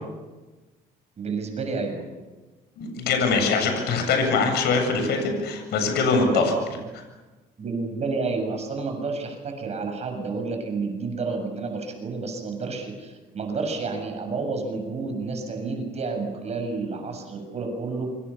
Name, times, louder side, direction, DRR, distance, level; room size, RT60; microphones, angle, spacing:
voice 1, 1.2-2.0 5.9-6.8 7.6-18.1, right 4 dB, 40° right, 4 dB, 7.3 m, -30 dB
voice 2, 2.8-6.4 6.9-7.0, left 4 dB, 75° left, 4 dB, 7.7 m, -23 dB
28.0 x 25.0 x 7.2 m, 1.2 s
cardioid pair, 110°, 17 cm